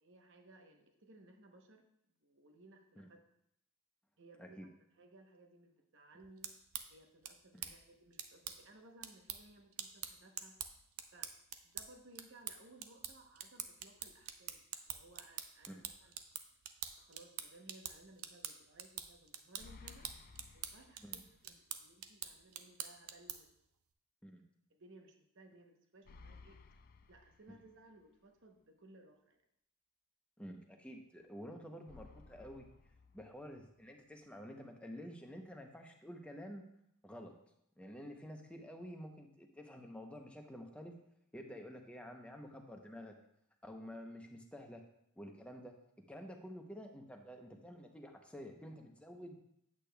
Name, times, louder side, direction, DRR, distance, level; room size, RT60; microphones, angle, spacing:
voice 1, 0.0-1.9 2.2-3.2 4.2-4.7 5.0-6.6 6.9-10.5 11.1-11.3 11.6-16.2 17.0-20.1 20.5-23.7 24.7-26.6 27.1-29.4, right 2 dB, 60° right, 4 dB, 0.9 m, -61 dB
sound 1, 6.2-23.6, right 9 dB, 80° right, 0.5 m, -47 dB
sound 2, 19.6-21.6 21.9-22.0 26.0-28.0 31.9-33.8, left 4 dB, 40° left, 0.4 m, -58 dB
voice 2, 30.4-32.7 33.1-36.6 37.0-37.3 37.8-41.0 41.3-43.1 43.6-44.8 45.2-45.7 46.1-49.4, equal, 5° left, 2 dB, 0.7 m, -50 dB
8.5 x 8.1 x 2.3 m, 0.75 s
head